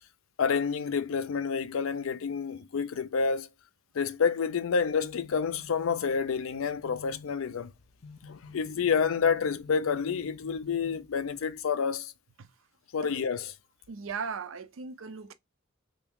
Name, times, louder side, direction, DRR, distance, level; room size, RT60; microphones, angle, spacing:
voice 1, 0.4-3.5 3.9-7.7 8.3-12.1 12.9-13.5, left 6 dB, 75° left, 0.4 m, -29 dB
sound 1, 4.7-11.6, left 4 dB, 55° left, 1.2 m, -50 dB
voice 2, 13.9-15.3, right 5 dB, 70° right, 0.5 m, -37 dB
3.5 x 2.6 x 3.4 m
head